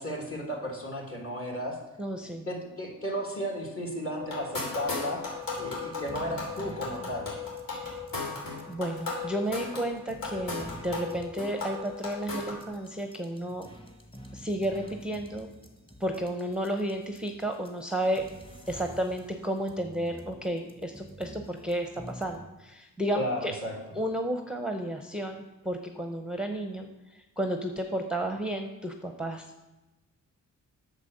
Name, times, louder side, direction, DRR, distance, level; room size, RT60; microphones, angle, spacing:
voice 1, 0.0-1.8 2.2-5.2 5.6-7.3 23.2-23.7, equal, 40° left, 0 dB, 2.5 m, -34 dB
voice 2, 2.0-2.5 7.7-8.0 8.7-13.7 14.3-15.5 16.0-18.3 18.7-23.5 23.9-29.5, right 1 dB, 5° right, 5 dB, 0.7 m, -32 dB
sound 1, 4.2-12.6, left 4 dB, 80° left, 3.2 m, -36 dB
sound 2, 5.3-22.4, equal, 15° left, 1.4 m, -49 dB
8.2 x 6.8 x 6.5 m, 1.1 s
cardioid pair, 105°, 33 cm